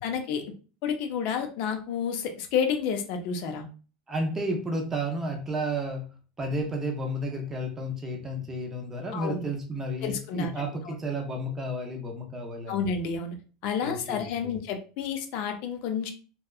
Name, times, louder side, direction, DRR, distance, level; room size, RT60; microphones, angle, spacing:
voice 1, 0.0-0.4 0.8-3.6 9.1-9.5 10.0-10.9 12.7-13.4 13.6-16.1, left 6 dB, 50° left, 5 dB, 0.5 m, -30 dB
voice 2, 4.1-6.0 6.4-12.9 13.8-14.6, right 1 dB, 15° right, 2 dB, 0.5 m, -32 dB
2.7 x 2.2 x 2.3 m, 0.37 s
supercardioid pair, 160°, 3 cm